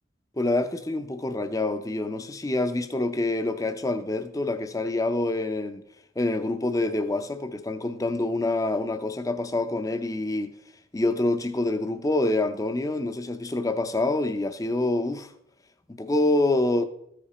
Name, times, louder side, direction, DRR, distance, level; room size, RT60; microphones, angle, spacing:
voice 1, 0.4-5.8 6.2-10.5 10.9-15.3 15.9-16.8, left 2 dB, 20° left, 0.6 m, -26 dB
13.5 x 5.1 x 4.2 m
head